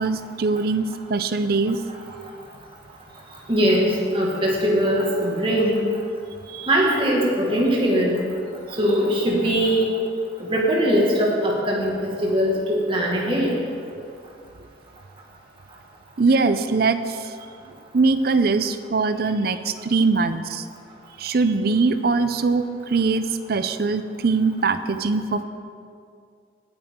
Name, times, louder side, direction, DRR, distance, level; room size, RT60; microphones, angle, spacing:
voice 1, 0.0-1.8 6.5-6.7 16.2-17.3 17.7-20.6 21.2-25.4, right 4 dB, 55° right, 11 dB, 0.5 m, -22 dB
voice 2, 3.5-5.8 6.7-8.2 8.8-9.9 10.4-13.6, equal, 30° right, -3 dB, 1.9 m, -21 dB
17.0 x 8.9 x 3.7 m, 2.3 s
head